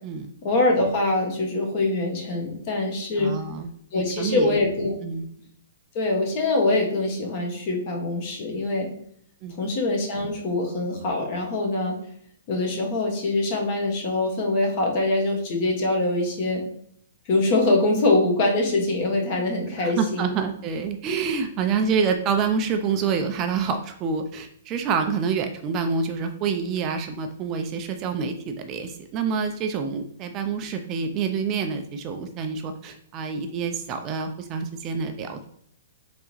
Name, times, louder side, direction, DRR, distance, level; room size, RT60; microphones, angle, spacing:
voice 1, 0.4-3.3 3.9-5.0 5.9-8.9 9.6-12.0 12.5-16.6 17.3-20.4, left 2 dB, 40° left, 1 dB, 1.1 m, -24 dB
voice 2, 3.2-4.5 5.0-5.2 9.4-9.5 19.8-35.5, right 5 dB, 30° right, 6 dB, 0.4 m, -27 dB
4.0 x 3.4 x 3.0 m, 0.66 s
hypercardioid pair, 145°, 0 cm